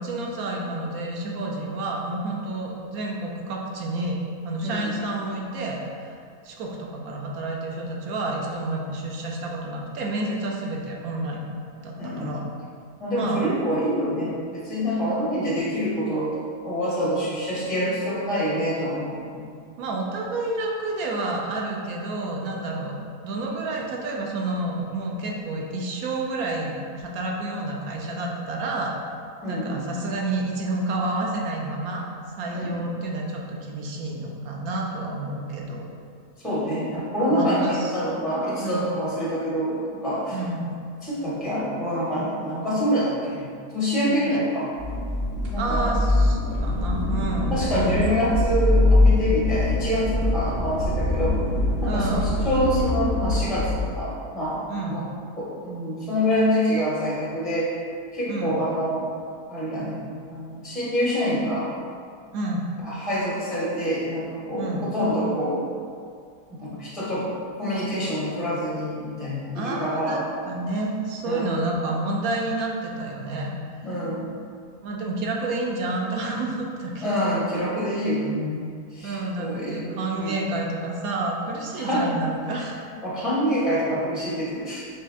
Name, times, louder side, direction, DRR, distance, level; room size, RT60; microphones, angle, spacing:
voice 1, 0.0-4.2 4.4-6.2 6.4-11.5 11.8-12.5 13.1-13.5 19.8-28.9 29.5-32.0 32.4-35.9 37.3-37.9 38.6-38.8 40.3-40.7 44.2-44.4 45.6-48.0 51.9-52.3 54.7-55.0 58.3-58.6 62.3-62.7 64.6-64.9 69.5-73.5 74.8-77.2 79.0-82.8, right 2 dB, 75° right, -1 dB, 1.1 m, -29 dB
voice 2, 4.6-4.9 12.0-12.4 13.0-16.4 16.6-19.5 29.4-29.8 32.5-32.7 36.4-40.4 41.0-43.5 43.7-44.7 45.3-45.8 47.5-51.4 51.8-55.0 55.4-57.7 58.1-59.1 59.5-61.7 62.8-65.6 66.5-67.3 67.6-70.3 71.2-71.5 73.8-74.3 77.0-78.6 78.9-80.4 81.7-82.1 83.0-84.8, equal, ahead, -7 dB, 0.4 m, -26 dB
sound 1, 44.8-53.8, left 2 dB, 50° right, 0.8 m, -23 dB
4.3 x 3.2 x 3.6 m, 2.2 s
omnidirectional pair, 1.6 m